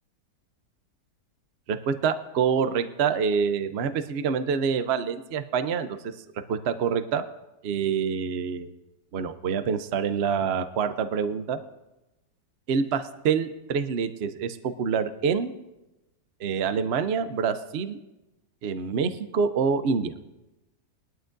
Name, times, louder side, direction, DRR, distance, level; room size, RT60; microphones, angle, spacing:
voice 1, 1.7-5.9 6.5-7.2 7.6-8.7 9.1-11.6 12.7-15.5 16.4-18.0 18.6-20.1, right 6 dB, 55° right, 10 dB, 0.7 m, -26 dB
21.0 x 12.5 x 2.6 m, 0.97 s
omnidirectional pair, 1.8 m